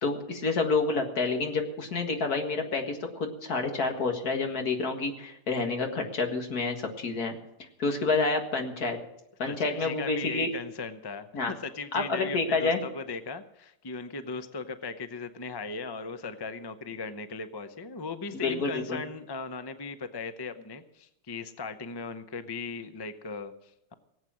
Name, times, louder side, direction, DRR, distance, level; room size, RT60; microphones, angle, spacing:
voice 1, 0.0-7.3 7.8-9.0 9.4-10.5 11.3-11.5 11.9-12.8 18.3-19.0, left 3 dB, 65° left, 4 dB, 2.2 m, -28 dB
voice 2, 9.4-23.9, left 4 dB, 35° left, 10 dB, 0.4 m, -38 dB
18.5 x 8.2 x 7.5 m, 0.81 s
omnidirectional pair, 1.8 m